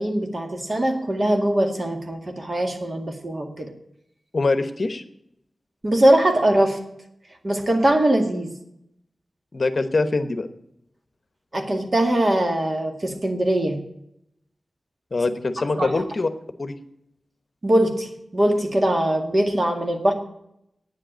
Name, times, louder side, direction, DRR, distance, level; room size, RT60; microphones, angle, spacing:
voice 1, 0.0-3.7 5.8-6.8 7.4-8.5 11.5-13.8 15.8-15.9 17.6-20.1, right 1 dB, 40° right, 4 dB, 2.0 m, -21 dB
voice 2, 4.3-5.0 9.5-10.5 15.1-16.3 16.6-16.8, left 3 dB, 50° left, 9 dB, 1.0 m, -23 dB
9.5 x 7.8 x 9.0 m, 0.78 s
wide cardioid pair, 85°, 0 cm